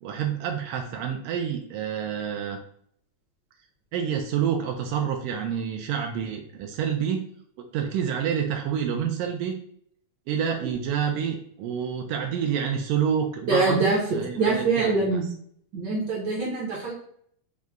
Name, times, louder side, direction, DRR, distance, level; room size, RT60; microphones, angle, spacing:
voice 1, 0.0-2.6 3.9-7.2 7.6-9.6 10.3-13.8 14.1-15.2, right 8 dB, 90° right, 3 dB, 1.3 m, -28 dB
voice 2, 13.5-14.0 14.3-15.3 15.7-16.9, right 3 dB, 70° right, -4 dB, 1.0 m, -24 dB
4.9 x 2.2 x 3.4 m, 0.65 s
omnidirectional pair, 3.3 m